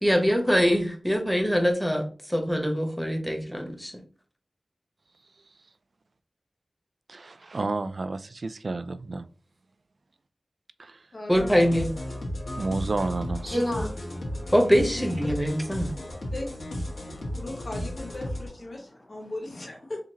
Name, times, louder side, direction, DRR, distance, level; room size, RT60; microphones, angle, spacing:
voice 1, 0.0-3.9 11.3-11.9 14.5-15.9, equal, ahead, 1.2 m, -23 dB
voice 2, 7.1-9.3 10.8-11.0 12.6-13.5, right 3 dB, 65° right, 0.3 m, -31 dB
voice 3, 11.1-11.6 14.8-15.1 16.3-16.5 17.3-20.0, left 2 dB, 60° left, 1.4 m, -37 dB
sound 1, 11.3-18.5, left 1 dB, 80° left, 1.4 m, -34 dB
voice 4, 13.4-14.5 15.8-16.3 16.9-17.4 19.1-19.3, equal, 30° left, 1.9 m, -34 dB
4.9 x 2.7 x 2.9 m
cardioid pair, 45°, 0 cm